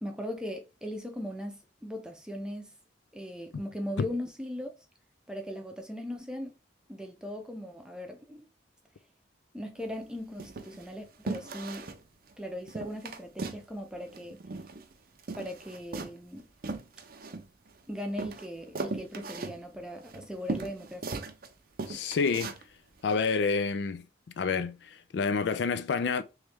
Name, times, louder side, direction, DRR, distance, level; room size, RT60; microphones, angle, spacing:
voice 1, 0.0-2.7 3.1-4.7 5.3-6.6 6.9-8.5 9.5-11.9 12.4-14.4 15.4-16.5 17.9-21.3, equal, 5° right, 0.6 m, -39 dB
sound 1, 9.8-10.0 10.4-10.9 11.3-12.0 12.3-12.4 12.7-13.7 13.9-14.9 15.2-17.8 18.2-21.5 21.8-22.6 23.1-23.2, right 3 dB, 50° right, 0.5 m, -38 dB
voice 2, 21.9-22.5 23.0-24.0 24.4-26.2, left 5 dB, 65° left, 0.3 m, -28 dB
3.2 x 3.2 x 3.4 m
head